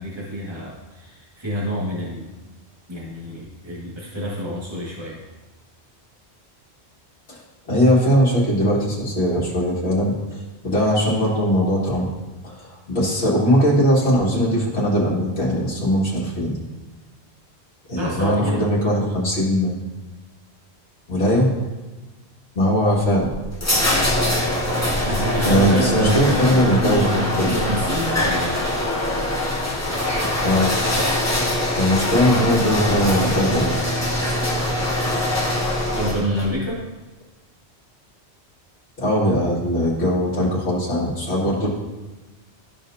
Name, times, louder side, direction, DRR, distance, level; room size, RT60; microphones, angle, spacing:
voice 1, 0.0-2.3 2.9-5.2 17.9-18.7 25.0-28.5 35.9-36.8, equal, 25° right, -6 dB, 1.9 m, -27 dB
voice 2, 7.3-10.1 10.6-12.1 12.4-16.5 17.9-19.8 21.1-21.5 22.6-23.3 25.4-27.5 30.4-30.7 31.8-33.7 39.0-41.7, equal, 70° left, -7 dB, 2.2 m, -20 dB
sound 1, 23.1-36.5, left 1 dB, 15° left, 1.2 m, -23 dB
13.5 x 5.0 x 2.7 m, 1.2 s
omnidirectional pair, 1.1 m